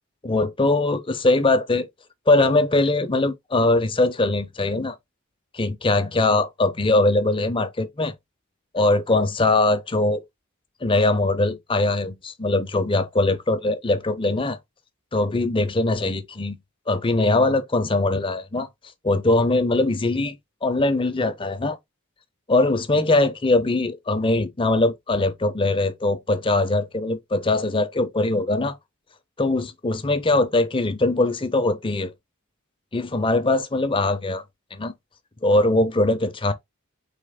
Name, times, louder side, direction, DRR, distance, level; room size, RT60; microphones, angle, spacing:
voice 1, 0.2-1.9 2.3-5.0 5.5-8.1 8.7-10.2 10.8-14.6 15.1-16.6 16.9-18.7 19.0-20.4 20.6-21.8 22.5-28.7 29.4-32.1 32.9-34.4 34.7-34.9 35.4-36.5, left 2 dB, 25° left, 0.6 m, -21 dB
4.2 x 3.0 x 3.5 m
head